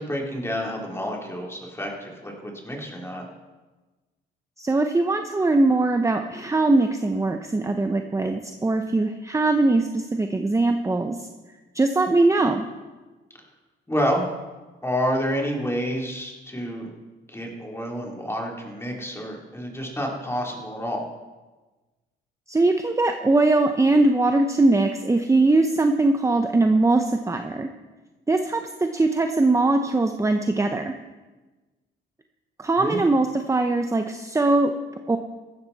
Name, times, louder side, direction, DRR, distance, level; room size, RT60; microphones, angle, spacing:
voice 1, 0.0-3.2 13.9-14.2 14.8-16.9 17.3-21.0 32.8-33.0, equal, 10° left, -1 dB, 3.3 m, -29 dB
voice 2, 4.6-11.2 11.7-12.6 22.5-27.7 28.3-30.9 32.6-34.7 35.1-35.2, right 2 dB, 15° right, 5 dB, 0.8 m, -21 dB
15.5 x 13.5 x 4.2 m, 1.2 s
cardioid pair, 90°, 20 cm